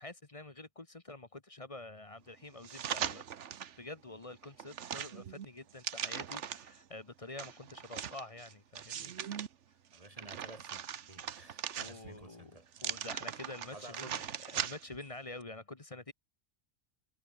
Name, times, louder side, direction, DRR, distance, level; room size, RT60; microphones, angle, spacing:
voice 1, 0.0-3.3 3.8-9.1 11.7-14.2 14.5-16.1, left 2 dB, 30° left, 1.3 m, -47 dB
sound 1, 2.6-3.8 4.2-6.8 7.4-9.5 9.9-12.2 12.7-15.0 15.4-15.5, right 9 dB, 80° right, 1.3 m, -40 dB
voice 2, 9.9-13.0 13.7-14.3, right 1 dB, 30° right, 3.3 m, -53 dB
omnidirectional pair, 1.2 m